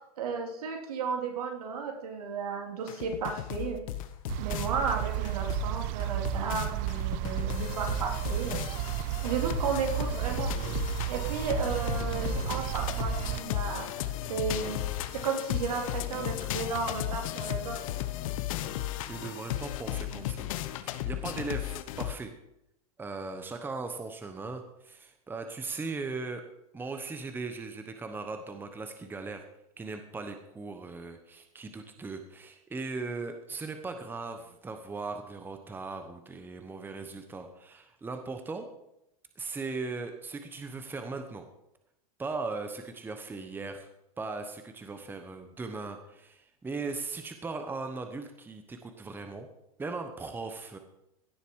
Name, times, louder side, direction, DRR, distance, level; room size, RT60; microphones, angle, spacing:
voice 1, 0.2-3.8 4.4-8.6 9.2-10.5 11.1-14.8 15.1-17.8, right 5 dB, 80° right, 1 dB, 3.3 m, -34 dB
sound 1, 2.9-22.1, left 13 dB, 60° left, 0.9 m, -35 dB
sound 2, 4.3-13.4, right 17 dB, 40° right, 0.5 m, -33 dB
voice 2, 19.0-20.5 20.8-22.3 23.0-26.4 26.7-29.5 29.8-38.7 39.4-41.4 42.2-43.9 44.2-49.5 49.8-50.8, right 3 dB, 10° right, 7 dB, 1.1 m, -38 dB
16.5 x 6.9 x 4.8 m, 0.82 s
hypercardioid pair, 125°, 19 cm